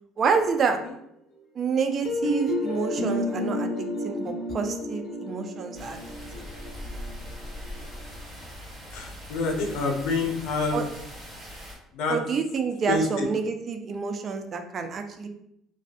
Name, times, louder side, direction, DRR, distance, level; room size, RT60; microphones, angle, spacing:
voice 1, 0.2-0.8 1.6-6.0 6.3-6.4 10.7-10.8 12.1-15.3, right 5 dB, 45° right, 6 dB, 0.3 m, -28 dB
sound 1, 2.0-7.8, left 1 dB, 45° left, 0.8 m, -30 dB
sound 2, 5.7-11.8, equal, 15° right, 1.3 m, -41 dB
voice 2, 8.9-10.8 11.9-12.2 12.9-13.3, left 3 dB, 75° left, 2 dB, 0.5 m, -27 dB
2.5 x 2.3 x 2.4 m, 0.76 s
supercardioid pair, 90°, 0 cm